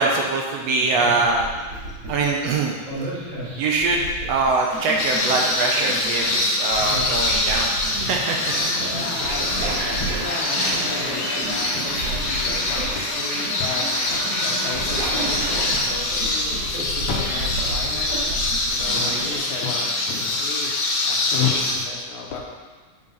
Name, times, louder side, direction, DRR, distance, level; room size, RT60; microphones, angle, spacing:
voice 1, 0.0-1.5 2.1-2.8 3.0-3.1 3.6-7.8 8.0-8.5 10.3-10.8 18.9-19.3, right 3 dB, 70° right, 0 dB, 1.8 m, -23 dB
sound 1, 0.8-19.7, right 1 dB, 40° right, 3.3 m, -33 dB
sound 2, 5.0-21.7, left 2 dB, 65° left, 2.1 m, -25 dB
voice 2, 8.9-13.9 14.4-18.2 18.7-20.7 21.0-22.4, left 5 dB, 80° left, -1 dB, 2.6 m, -32 dB
sound 3, 9.1-15.8, right 2 dB, 85° right, 2.9 m, -31 dB
7.1 x 5.6 x 5.5 m, 1.3 s
omnidirectional pair, 3.3 m